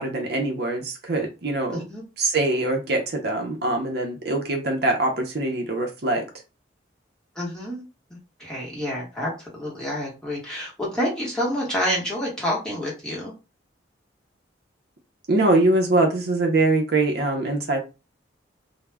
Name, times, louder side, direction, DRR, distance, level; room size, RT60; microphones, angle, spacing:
voice 1, 0.0-1.9 2.2-6.2 15.3-17.8, right 2 dB, 55° right, 2 dB, 0.6 m, -23 dB
voice 2, 1.7-2.0 7.4-7.8 8.4-13.3, equal, 5° left, -5 dB, 1.0 m, -28 dB
2.2 x 2.0 x 3.3 m, 0.29 s
head